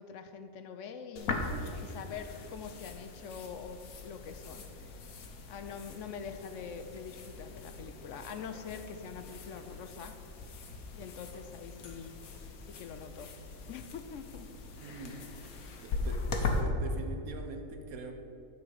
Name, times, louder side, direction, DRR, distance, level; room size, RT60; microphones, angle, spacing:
voice 1, 0.0-4.9 5.5-10.2 10.9-12.2 12.7-13.3 13.7-14.5, left 6 dB, 70° left, 8 dB, 0.9 m, -44 dB
sound 1, 1.2-16.6, left 3 dB, 90° left, 1.4 m, -40 dB
voice 2, 14.8-15.2 15.8-18.1, right 3 dB, 90° right, 6 dB, 1.4 m, -43 dB
9.9 x 5.0 x 7.8 m, 2.7 s
omnidirectional pair, 1.4 m